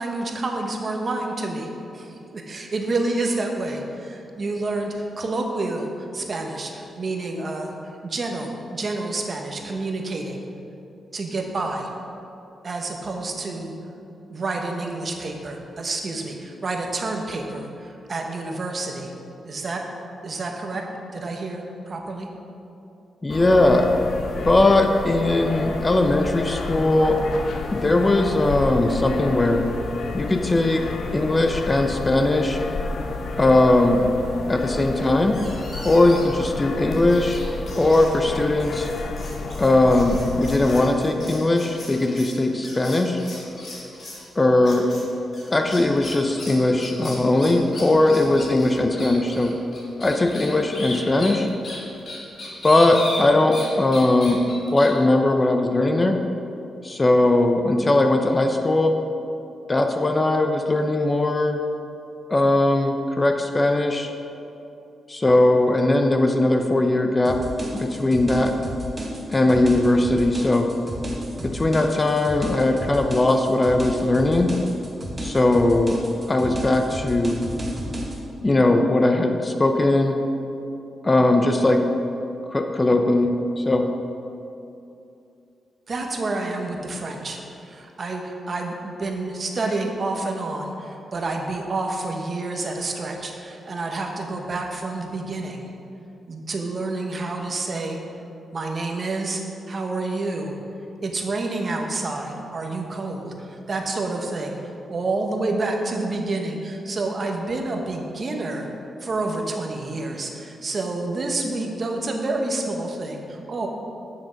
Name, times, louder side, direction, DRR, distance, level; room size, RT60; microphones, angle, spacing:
voice 1, 0.0-10.4 11.1-11.9 12.6-13.7 14.3-19.1 19.4-19.8 20.2-20.8 21.1-22.3 85.9-95.6 96.3-98.0 98.5-99.4 99.7-100.6 101.0-108.7 109.0-113.7, right 2 dB, 40° right, 2 dB, 1.1 m, -29 dB
voice 2, 23.2-23.9 24.4-27.2 27.7-29.6 30.1-30.8 31.1-32.6 33.4-34.1 34.5-35.4 35.8-37.4 37.8-38.9 39.6-43.2 44.4-44.9 45.5-49.5 50.0-51.5 52.6-54.4 54.7-56.2 56.8-59.0 59.7-61.6 62.3-64.1 65.1-67.4 67.7-68.5 69.3-70.7 71.4-74.5 75.2-76.0 76.3-77.4 78.4-80.2 81.0-81.8 82.5-83.9, left 2 dB, 20° left, 5 dB, 0.6 m, -19 dB
sound 1, 23.3-40.9, left 3 dB, 65° left, 0.8 m, -30 dB
sound 2, 35.3-36.4 36.9-44.3 44.6-45.0 45.3-53.7 53.9-54.9, left 1 dB, 50° left, 2.1 m, -37 dB
sound 3, 67.2-78.2, equal, 20° right, 1.3 m, -33 dB
8.5 x 6.3 x 5.1 m, 2.8 s
cardioid pair, 105°, 0 cm